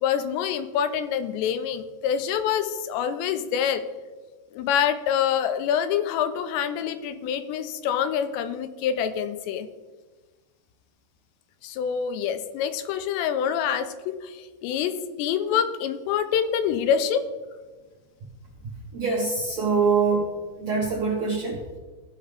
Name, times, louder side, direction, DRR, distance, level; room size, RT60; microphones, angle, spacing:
voice 1, 0.0-3.8 4.5-9.7 11.6-17.2, left 8 dB, 85° left, 10 dB, 2.8 m, -26 dB
voice 2, 18.9-21.8, right 4 dB, 70° right, -4 dB, 1.7 m, -24 dB
16.0 x 5.6 x 3.3 m, 1.3 s
omnidirectional pair, 5.0 m